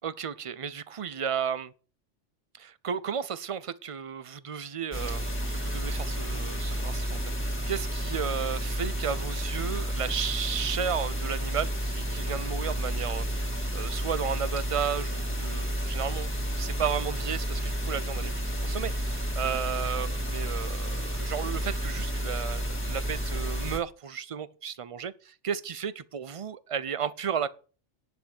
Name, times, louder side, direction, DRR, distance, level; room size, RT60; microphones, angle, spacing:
voice 1, 0.0-1.7 2.5-16.3 16.6-18.3 18.6-25.1 25.4-27.5, right 7 dB, 65° right, 0.3 m, -33 dB
sound 1, 4.9-23.8, equal, 10° left, 2.2 m, -31 dB
10.0 x 6.2 x 7.8 m
omnidirectional pair, 1.3 m